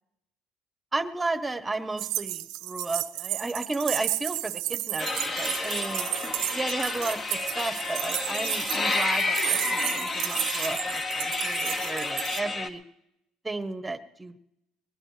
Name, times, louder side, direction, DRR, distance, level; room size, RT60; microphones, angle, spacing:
voice 1, 0.9-6.1 6.5-12.8 13.4-14.4, right 2 dB, 15° right, 12 dB, 1.1 m, -33 dB
sound 1, 2.0-12.4, right 16 dB, 80° right, 0.5 m, -32 dB
sound 2, 5.0-12.7, left 3 dB, 35° left, 1.5 m, -30 dB
21.5 x 19.5 x 3.3 m, 0.84 s
supercardioid pair, 100°, 0 cm